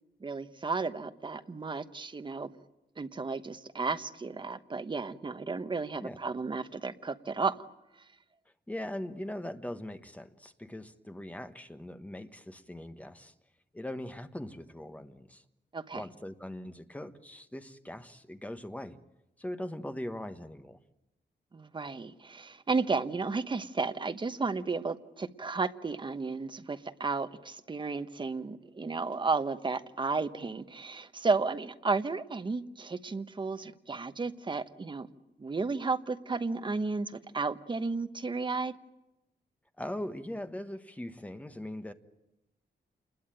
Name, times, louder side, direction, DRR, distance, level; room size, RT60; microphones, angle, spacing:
voice 1, 0.2-2.6 3.0-7.6 8.0-8.1 15.7-16.0 21.5-35.1 35.4-38.7, right 4 dB, 25° right, 9 dB, 1.1 m, -33 dB
voice 2, 8.7-13.3 13.7-15.4 15.9-19.0 19.4-20.8 39.8-41.9, left 1 dB, 10° left, 9 dB, 1.3 m, -40 dB
28.5 x 21.5 x 9.1 m, 0.94 s
wide cardioid pair, 175°, 17 cm